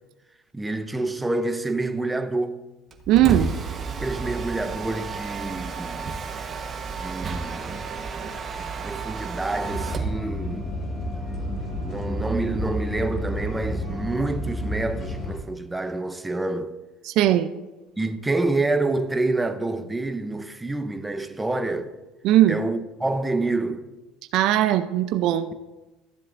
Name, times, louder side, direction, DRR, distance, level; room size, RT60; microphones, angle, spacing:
voice 1, 0.5-2.6 4.0-6.1 7.0-7.8 8.6-10.8 11.8-16.7 18.0-21.9 22.5-23.9, right 2 dB, 10° right, 0.7 m, -28 dB
Mechanisms, 2.9-10.2, right 5 dB, 35° right, 1.2 m, -32 dB
voice 2, 3.1-3.5 17.1-17.5 22.2-22.6 24.3-25.5, right 12 dB, 65° right, 0.5 m, -19 dB
sound 1, 9.6-15.4, equal, 40° left, 1.9 m, -30 dB
14.5 x 7.5 x 2.6 m
supercardioid pair, 100°, 0 cm